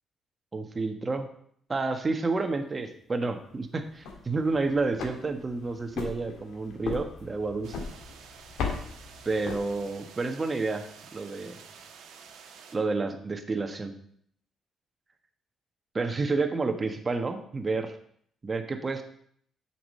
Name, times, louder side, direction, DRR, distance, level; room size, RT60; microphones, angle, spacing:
voice 1, 0.5-1.3 1.7-7.8 9.2-10.8 11.1-11.6 12.7-13.9 15.9-17.9 18.4-19.0, right 3 dB, 30° right, 6 dB, 1.3 m, -30 dB
sound 1, 3.9-10.2, left 4 dB, 80° left, 1.9 m, -38 dB
sound 2, 7.6-12.8, right 6 dB, 85° right, 1.2 m, -50 dB
7.8 x 6.1 x 6.5 m, 0.65 s
cardioid pair, 90°, 0 cm